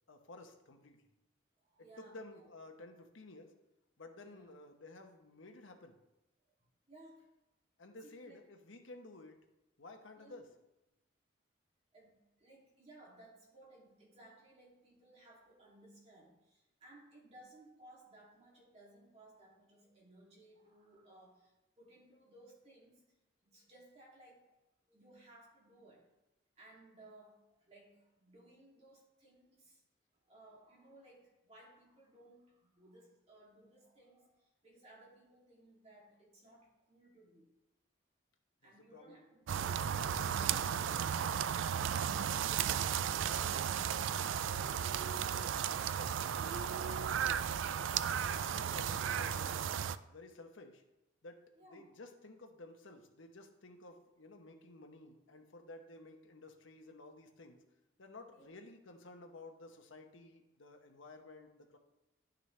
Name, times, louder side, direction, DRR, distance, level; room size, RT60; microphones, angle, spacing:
voice 1, 0.1-1.0 2.0-3.5 4.0-6.0 7.8-9.5 9.8-10.5 38.6-39.2 41.7-42.4 43.0-45.4 45.7-47.5 48.1-50.8 51.2-51.4 51.7-57.6 58.0-61.8, left 2 dB, 85° left, 4 dB, 1.1 m, -54 dB
voice 2, 1.6-2.5 4.2-4.5 6.9-7.3 8.0-8.4 10.2-10.4 11.9-23.0 23.4-24.5 24.9-26.1 26.6-29.8 30.1-37.5 38.6-41.1 51.5-51.9 58.3-58.5, right 1 dB, 35° right, -5 dB, 2.7 m, -61 dB
sound 1, 39.5-50.0, right 8 dB, 80° right, 0.3 m, -35 dB
11.0 x 6.5 x 3.3 m, 0.97 s
head